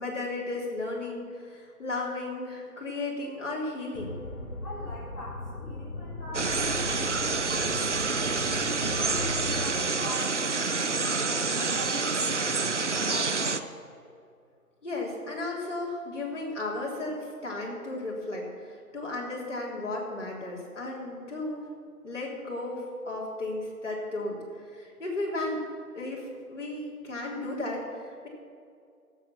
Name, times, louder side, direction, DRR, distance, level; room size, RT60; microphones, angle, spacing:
voice 1, 0.0-4.2 14.8-21.7 22.0-24.4 24.7-25.6 25.9-28.3, left 2 dB, 50° left, -3 dB, 3.5 m, -34 dB
sound 1, 3.9-9.7, left 3 dB, 65° left, 1.9 m, -38 dB
voice 2, 4.6-8.4 8.9-14.1, equal, 10° left, -16 dB, 3.4 m, -43 dB
sound 2, 6.3-13.6, right 4 dB, 50° right, 0.5 m, -28 dB
16.0 x 8.0 x 6.0 m, 2.3 s
figure-of-eight pair, 175°, 46 cm